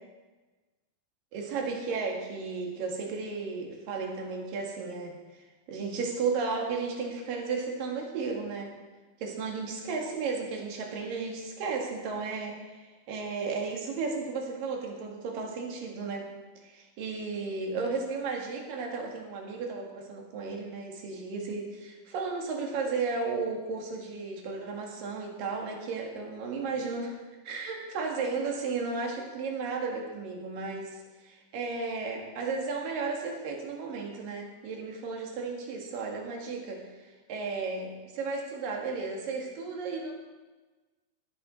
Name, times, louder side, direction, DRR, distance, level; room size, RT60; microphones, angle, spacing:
voice 1, 1.3-8.7 9.2-16.3 16.6-27.2 27.5-40.1, right 4 dB, 70° right, 0 dB, 3.6 m, -34 dB
17.0 x 10.5 x 4.3 m, 1.2 s
omnidirectional pair, 4.1 m